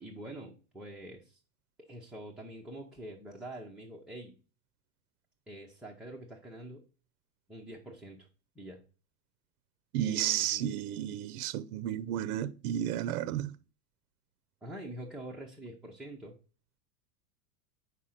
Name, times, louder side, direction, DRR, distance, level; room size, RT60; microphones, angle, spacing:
voice 1, 0.0-1.4 1.9-4.3 5.5-6.8 7.5-8.3 8.6-8.8 10.0-10.8 14.6-16.4, right 1 dB, ahead, 0.4 m, -45 dB
voice 2, 9.9-13.5, right 12 dB, 75° right, 0.6 m, -32 dB
5.0 x 4.7 x 5.6 m
supercardioid pair, 145°, 45 cm